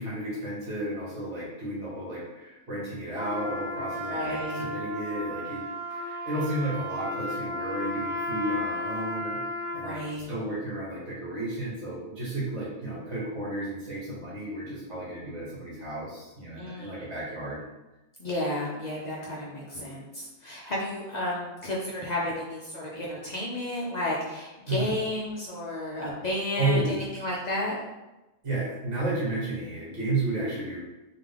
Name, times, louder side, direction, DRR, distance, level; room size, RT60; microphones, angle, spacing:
voice 1, 0.0-5.6 5.9-9.4 9.7-10.0 10.2-17.6 24.7-24.9 26.5-27.0 28.4-30.8, right 1 dB, 50° right, -6 dB, 1.7 m, -32 dB
Trumpet, 3.1-10.1, equal, 30° right, 1.3 m, -34 dB
voice 2, 4.0-4.7 9.7-10.3 16.5-17.0 18.2-20.0 20.4-27.8, left 1 dB, 70° left, -4 dB, 0.4 m, -32 dB
3.7 x 2.8 x 3.3 m, 1.0 s
omnidirectional pair, 1.6 m